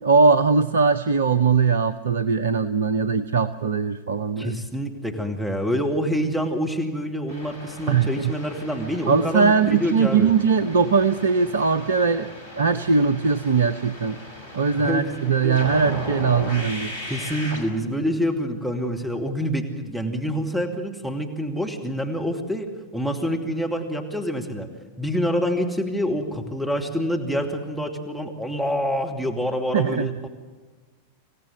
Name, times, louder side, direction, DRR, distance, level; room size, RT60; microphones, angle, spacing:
voice 1, 0.0-4.6 7.9-8.3 9.1-12.3 12.5-14.2 14.5-17.0 29.7-30.1, right 5 dB, 65° right, 14 dB, 0.7 m, -20 dB
voice 2, 4.4-10.3 14.7-15.6 17.1-24.7 25.0-30.3, equal, 5° right, 4 dB, 2.6 m, -27 dB
sound 1, 7.3-17.6, left 1 dB, 65° left, 5.1 m, -37 dB
26.0 x 17.0 x 9.4 m, 1.3 s
figure-of-eight pair, 90°, 0 cm